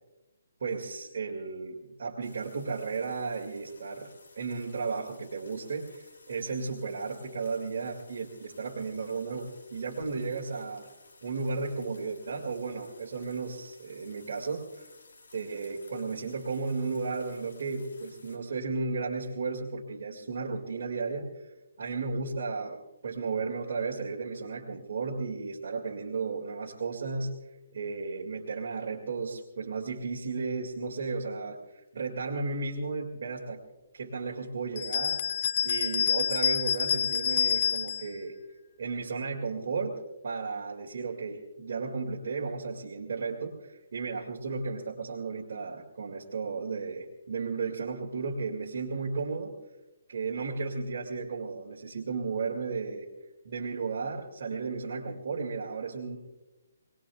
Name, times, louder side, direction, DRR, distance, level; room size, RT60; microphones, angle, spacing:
voice 1, 0.6-10.9 11.2-14.9 15.3-21.5 21.8-27.3 27.7-33.6 33.9-35.2 35.6-38.3 38.8-49.5 50.1-53.1 53.4-56.2, right 4 dB, 55° right, -3 dB, 2.2 m, -34 dB
sound 1, 2.2-18.4, left 3 dB, 65° left, 6.7 m, -57 dB
sound 2, 34.8-38.1, left 7 dB, 35° left, 0.5 m, -27 dB
27.0 x 19.5 x 2.3 m, 1.1 s
hypercardioid pair, 170°, 0 cm